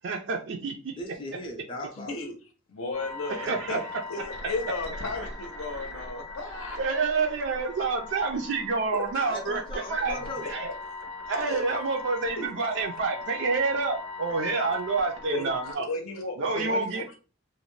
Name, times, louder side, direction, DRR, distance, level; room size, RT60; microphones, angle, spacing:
voice 1, 0.0-0.9 3.3-3.8 6.8-9.6 9.9-10.2 10.4-10.7 11.3-15.9 16.4-17.0, right 4 dB, 55° right, 0.3 m, -28 dB
voice 2, 0.9-2.1 9.3-10.4, left 1 dB, 25° left, 0.5 m, -38 dB
voice 3, 1.9-2.3 2.7-3.8 4.1-6.8 9.1-9.2 11.3-11.6 12.3-12.5 15.3-17.2, left 3 dB, 85° left, 0.6 m, -35 dB
sound 1, 2.9-15.7, left 3 dB, 85° right, 0.9 m, -40 dB
2.5 x 2.1 x 3.1 m
head